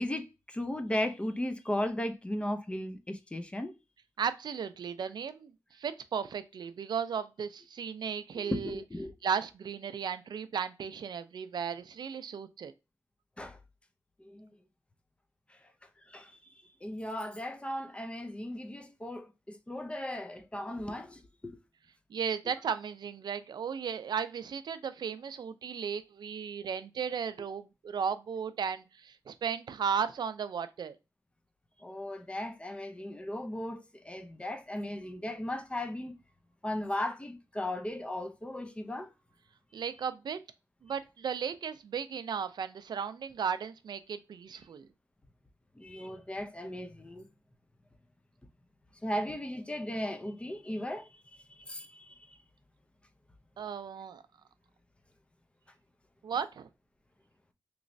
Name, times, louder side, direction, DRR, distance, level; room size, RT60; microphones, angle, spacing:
voice 1, 0.0-3.7 8.4-9.1 13.4-13.6 14.2-14.5 16.1-16.4 16.8-21.6 31.8-36.1 36.6-39.1 45.8-47.3 49.0-52.4, left 1 dB, 15° left, 0.5 m, -36 dB
voice 2, 4.2-8.8 9.2-12.7 22.1-31.0 39.7-40.4 40.8-44.9 53.6-54.2 56.2-56.7, right 7 dB, 70° right, 0.4 m, -35 dB
3.0 x 3.0 x 2.6 m
wide cardioid pair, 100°, 8 cm